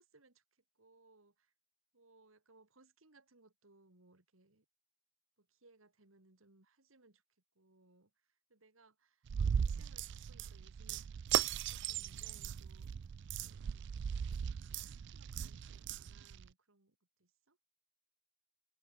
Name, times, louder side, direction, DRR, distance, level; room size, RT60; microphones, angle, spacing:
voice 1, 0.0-1.5 1.9-4.7 5.4-7.2 7.6-11.1 11.4-12.9 13.3-14.0 14.4-17.6, right 2 dB, 80° right, 2.3 m, -67 dB
sound 1, 9.3-16.5, right 8 dB, 60° right, 0.3 m, -38 dB
open air
head